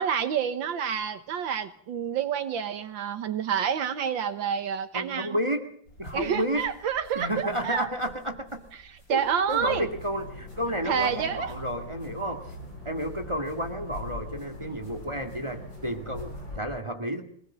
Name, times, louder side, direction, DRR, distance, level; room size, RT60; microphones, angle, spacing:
voice 1, 0.0-5.4 6.1-7.9 9.1-9.9 10.9-11.5, right 8 dB, 80° right, 8 dB, 1.9 m, -28 dB
voice 2, 4.9-5.7 6.0-6.7 7.2-8.6 9.1-12.4 12.8-17.2, equal, 15° right, 6 dB, 2.1 m, -31 dB
sound 1, 5.9-16.6, equal, 50° left, 6.8 m, -52 dB
sound 2, 9.6-16.6, left 2 dB, 85° left, 7.9 m, -42 dB
24.5 x 18.0 x 7.5 m, 0.63 s
omnidirectional pair, 2.0 m